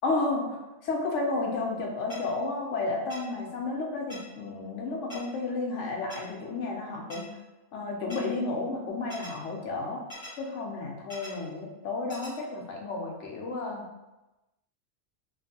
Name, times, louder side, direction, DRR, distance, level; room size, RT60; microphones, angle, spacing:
voice 1, 0.0-7.2 7.7-10.0 10.4-13.8, left 3 dB, 75° left, 0 dB, 0.9 m, -32 dB
sound 1, 2.1-2.2 3.1-3.2 4.1-4.2 5.1-5.2 6.1-6.2 7.1-7.2 8.1-8.2 9.1-9.3 10.1-10.3 11.1-11.3 12.1-12.3, left 1 dB, 30° left, 0.6 m, -42 dB
2.6 x 2.4 x 2.7 m, 1.0 s
omnidirectional pair, 1.3 m